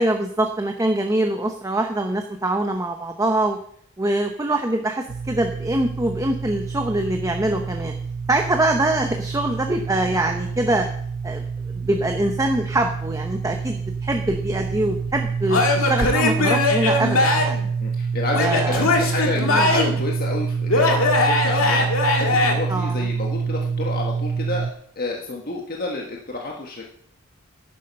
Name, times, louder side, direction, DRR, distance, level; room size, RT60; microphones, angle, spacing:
voice 1, 0.0-3.6 4.0-7.9 8.3-10.9 11.2-11.4 11.7-17.6 18.3-18.8 19.4-19.7 22.7-23.0, right 1 dB, 15° right, 4 dB, 0.8 m, -24 dB
sound 1, 5.1-24.7, right 5 dB, 70° right, 0.6 m, -27 dB
Male speech man speaking / Yell / Laughter, 15.5-17.6 18.3-20.0 20.7-22.5, left 2 dB, 75° left, 2.1 m, -20 dB
voice 2, 17.8-21.8 22.2-24.7 24.9-26.9, left 3 dB, 45° left, 0 dB, 1.5 m, -29 dB
11.0 x 9.4 x 5.5 m, 0.65 s
head